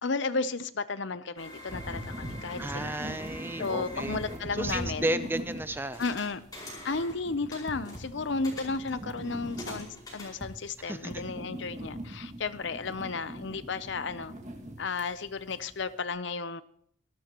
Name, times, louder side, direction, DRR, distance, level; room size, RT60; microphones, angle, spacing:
voice 1, 0.0-3.0 3.6-5.1 6.0-6.4 6.8-14.3 14.8-16.6, left 4 dB, 60° left, 0.6 m, -33 dB
sound 1, 1.4-4.9 5.9-7.2 7.5-11.1, left 1 dB, 20° left, 5.2 m, -46 dB
sound 2, 1.7-16.0, right 1 dB, 35° right, 2.0 m, -42 dB
voice 2, 2.6-4.2 4.5-6.0 10.8-11.2, right 1 dB, 10° right, 0.5 m, -33 dB
24.0 x 12.5 x 3.0 m
head